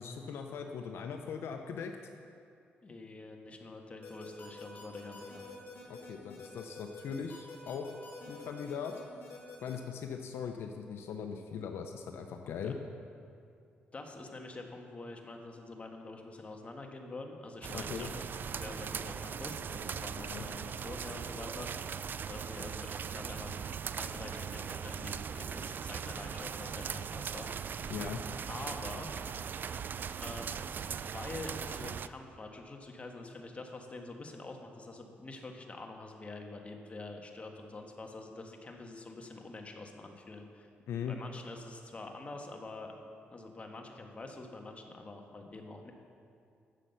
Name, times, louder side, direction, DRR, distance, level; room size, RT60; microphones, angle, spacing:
voice 1, 0.0-2.0 5.9-7.9 8.3-8.9 9.6-12.8 17.7-18.1 20.2-20.5 27.9-28.2 40.9-41.2, left 7 dB, 75° left, 5 dB, 0.7 m, -40 dB
voice 2, 2.8-5.6 12.4-12.7 13.9-21.9 22.2-23.6 23.8-27.7 28.5-29.1 30.2-40.7 41.1-42.9 43.3-45.9, left 2 dB, 30° left, 3 dB, 1.5 m, -46 dB
sound 1, 4.0-9.7, left 4 dB, 55° left, 3.3 m, -48 dB
sound 2, 17.6-32.1, right 7 dB, 50° right, 0.4 m, -39 dB
11.5 x 7.5 x 6.9 m, 2.5 s
cardioid pair, 80°, 4 cm